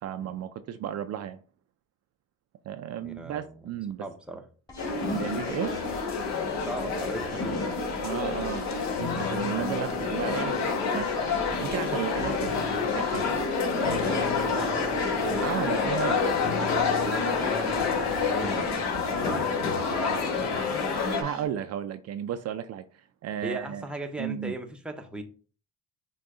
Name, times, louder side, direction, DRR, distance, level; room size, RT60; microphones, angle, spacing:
voice 1, 0.0-1.4 2.7-4.1 5.1-5.8 8.0-11.1 11.6-13.3 15.3-16.2 20.7-23.8 24.2-24.6, right 10 dB, 55° right, 0.4 m, -34 dB
voice 2, 3.0-3.6 4.0-4.4 6.6-7.7 13.7-15.5 17.5-19.8 23.4-25.2, right 1 dB, 5° right, 0.7 m, -38 dB
sound 1, 4.7-21.4, left 2 dB, 15° left, 2.1 m, -44 dB
sound 2, 4.8-21.2, left 4 dB, 55° left, 1.4 m, -28 dB
sound 3, 8.9-11.7 12.4-19.4 19.7-20.1, left 2 dB, 75° left, 1.0 m, -40 dB
6.1 x 2.3 x 3.7 m
cardioid pair, 95°, 32 cm